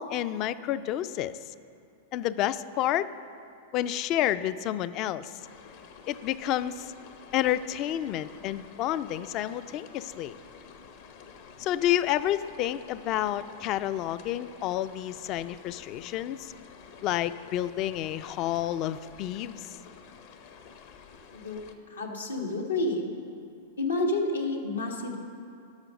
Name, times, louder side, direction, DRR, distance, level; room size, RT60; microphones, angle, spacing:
voice 1, 0.0-1.3 2.1-3.1 3.7-5.4 6.1-6.8 7.3-10.3 11.6-16.5 17.0-19.7, left 12 dB, 40° left, 14 dB, 0.4 m, -29 dB
sound 1, 5.4-21.7, left 6 dB, 60° left, 0.9 m, -50 dB
voice 2, 21.3-23.1 23.8-25.2, left 2 dB, 90° left, 1 dB, 1.4 m, -30 dB
11.5 x 6.3 x 6.2 m, 2.5 s
hypercardioid pair, 105°, 0 cm